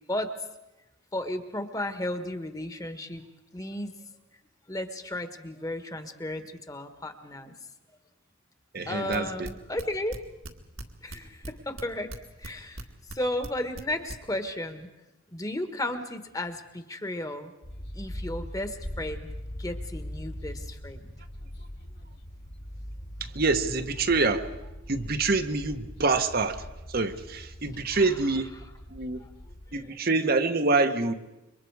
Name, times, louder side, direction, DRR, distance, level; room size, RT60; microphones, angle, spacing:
voice 1, 1.1-3.2 3.5-3.9 4.7-7.5 8.9-10.2 11.0-12.1 12.4-12.8 13.1-14.9 15.3-17.5 17.9-19.3 19.6-21.1 27.9-28.0 29.2-30.0, left 1 dB, 15° left, 8 dB, 1.3 m, -34 dB
voice 2, 8.7-9.5 23.2-24.5 24.9-26.6 26.9-28.5 28.9-29.3 29.7-31.1, right 3 dB, 45° right, 7 dB, 1.0 m, -26 dB
sound 1, 9.1-10.8 11.1-12.8 13.1-14.2, right 1 dB, 75° right, 2.0 m, -39 dB
sound 2, 17.6-29.9, equal, 50° left, 2.5 m, -41 dB
27.5 x 23.5 x 4.8 m, 1.0 s
head